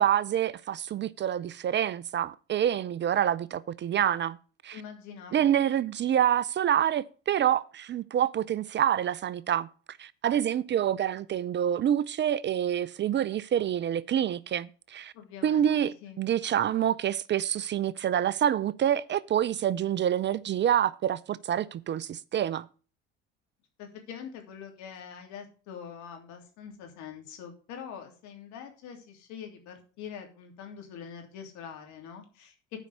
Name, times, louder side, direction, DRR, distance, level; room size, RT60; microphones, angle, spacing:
voice 1, 0.0-4.4 4.6-4.8 5.3-15.1 15.4-22.7, right 10 dB, 35° right, 0.5 m, -27 dB
voice 2, 4.7-5.5 15.1-16.2 23.8-32.5, left 7 dB, 70° left, 3.1 m, -44 dB
9.3 x 5.4 x 7.8 m
hypercardioid pair, 70°, 30 cm